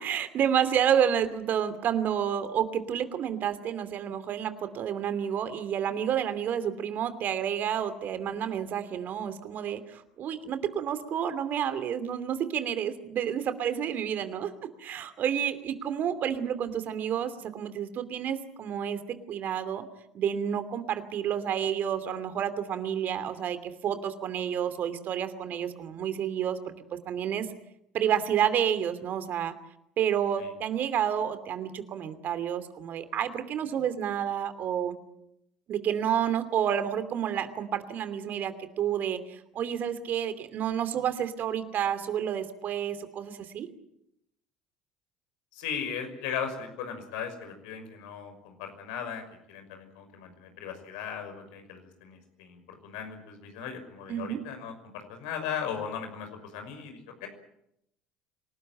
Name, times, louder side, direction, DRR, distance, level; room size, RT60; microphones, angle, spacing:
voice 1, 0.0-14.5 14.8-19.9 20.1-27.5 27.9-29.5 30.0-35.0 35.7-43.7 54.1-54.4, right 9 dB, 50° right, 11 dB, 2.8 m, -30 dB
voice 2, 45.5-57.3, left 7 dB, 70° left, 6 dB, 5.9 m, -37 dB
26.0 x 19.0 x 8.9 m, 0.79 s
hypercardioid pair, 65°, 4 cm